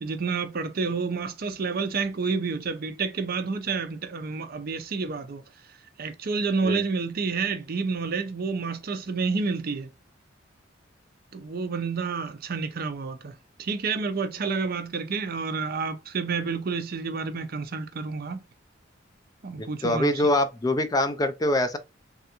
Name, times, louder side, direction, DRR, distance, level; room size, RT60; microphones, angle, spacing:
voice 1, 0.0-5.4 6.0-9.9 11.3-13.3 13.6-18.4 19.4-20.1, right 4 dB, 50° right, 0.5 m, -29 dB
voice 2, 19.8-21.8, left 1 dB, 20° left, 0.3 m, -24 dB
3.3 x 2.5 x 2.8 m
head